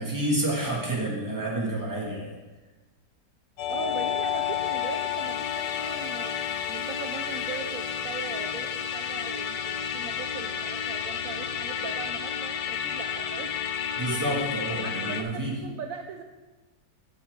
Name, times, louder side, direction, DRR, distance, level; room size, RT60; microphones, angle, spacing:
voice 1, 0.0-2.3 14.0-15.5, right 1 dB, 10° right, -3 dB, 1.9 m, -29 dB
Musical instrument, 3.6-15.2, left 8 dB, 90° left, 1.3 m, -31 dB
voice 2, 3.7-6.4 6.7-13.6 14.1-14.2 14.8-16.2, right 5 dB, 65° right, 5 dB, 1.0 m, -39 dB
13.5 x 6.9 x 3.7 m, 1.2 s
omnidirectional pair, 1.8 m